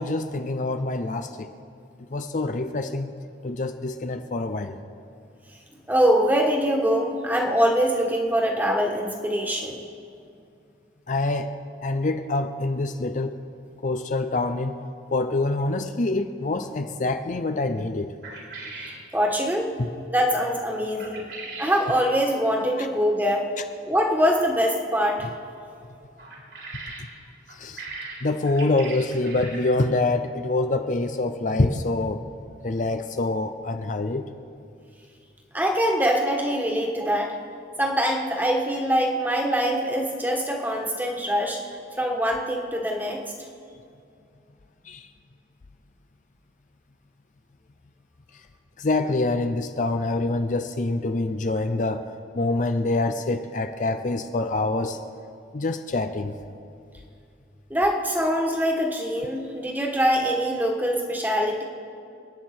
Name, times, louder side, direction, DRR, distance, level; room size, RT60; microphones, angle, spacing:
voice 1, 0.0-1.5 2.1-3.1 3.4-4.8 11.1-11.6 11.8-13.4 13.8-14.7 15.1-18.1 19.8-19.9 22.8-22.9 27.6-27.8 28.2-32.2 32.6-34.2 44.9-45.1 48.8-52.0 52.3-55.0 55.5-56.3, left 2 dB, 45° left, 8 dB, 0.5 m, -25 dB
voice 2, 5.9-9.8 19.1-19.7 20.1-21.2 21.6-23.5 23.9-25.3 35.5-37.3 37.8-41.6 42.0-43.2 57.7-61.6, equal, 10° right, 1 dB, 1.6 m, -23 dB
sound 1, 18.2-19.0 21.0-21.8 26.2-27.1 27.5-29.8, right 3 dB, 75° right, 3.7 m, -39 dB
27.5 x 9.3 x 4.5 m, 2.5 s
head